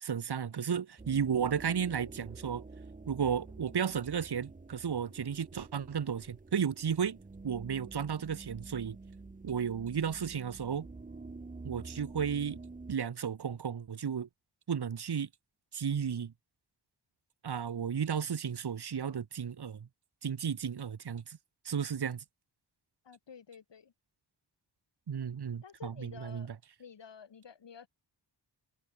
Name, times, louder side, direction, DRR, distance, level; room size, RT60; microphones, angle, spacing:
voice 1, 0.0-2.6 3.1-7.2 7.4-9.0 9.4-10.9 11.6-12.6 12.9-14.3 14.7-15.3 15.7-16.3 17.4-19.9 20.2-21.4 21.6-22.2 25.1-26.5, right 7 dB, 60° right, 1.4 m, -33 dB
sound 1, 1.0-13.0, right 3 dB, 20° right, 0.8 m, -49 dB
voice 2, 23.0-23.9 25.6-26.5 26.8-27.9, left 7 dB, 75° left, 2.4 m, -51 dB
wide cardioid pair, 120°, 43 cm